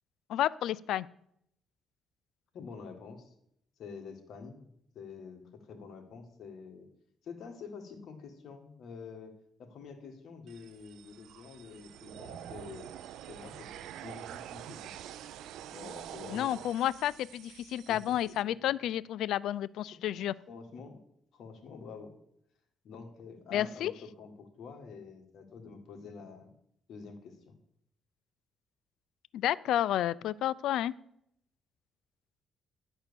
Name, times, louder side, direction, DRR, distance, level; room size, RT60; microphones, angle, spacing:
voice 1, 0.3-1.1 16.3-20.3 23.5-23.9 29.3-30.9, left 12 dB, 80° left, 20 dB, 0.3 m, -31 dB
voice 2, 2.5-3.3 3.8-6.9 7.2-13.0 13.3-14.9 15.7-16.6 17.9-18.3 19.9-21.0 21.3-22.2 22.8-26.5 26.9-27.6, left 5 dB, 60° left, 4 dB, 1.7 m, -47 dB
sound 1, 10.5-18.4, right 11 dB, 85° right, 0.4 m, -46 dB
11.0 x 4.4 x 6.9 m, 0.73 s
cardioid pair, 125°, 0 cm